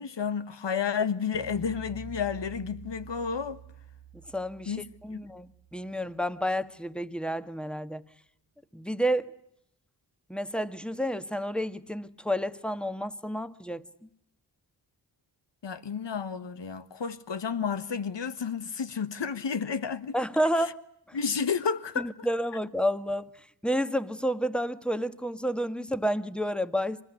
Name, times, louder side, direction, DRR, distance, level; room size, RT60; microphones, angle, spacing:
voice 1, 0.0-3.6 4.7-5.2 15.6-20.2 20.6-20.7 21.1-22.3, left 6 dB, 70° left, 1.5 m, -31 dB
sound 1, 1.3-6.7, right 8 dB, 60° right, 1.4 m, -48 dB
voice 2, 4.3-4.8 5.0-8.0 8.7-9.3 10.3-13.8 20.1-20.8 22.0-23.3 23.6-27.0, equal, ahead, 1.5 m, -30 dB
25.0 x 21.0 x 9.7 m
cardioid pair, 40°, 45 cm